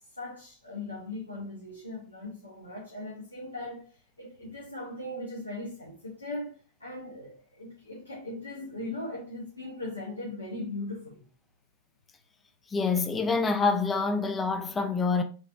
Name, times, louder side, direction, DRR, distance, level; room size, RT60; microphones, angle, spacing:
voice 1, 0.2-11.2, left 2 dB, 80° left, 1.0 m, -39 dB
voice 2, 12.7-15.2, left 4 dB, 20° left, 0.6 m, -26 dB
6.2 x 3.0 x 2.6 m
figure-of-eight pair, 90°, 0 cm